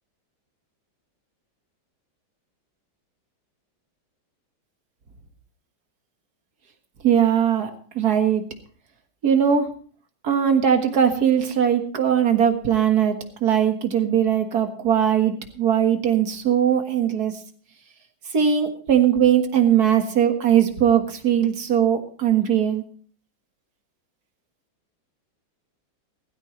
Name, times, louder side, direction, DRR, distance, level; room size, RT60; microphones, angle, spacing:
voice 1, 7.0-8.4 9.2-9.7 10.2-17.3 18.3-22.8, right 9 dB, 55° right, 6 dB, 2.0 m, -20 dB
16.5 x 15.5 x 3.1 m, 0.44 s
omnidirectional pair, 2.2 m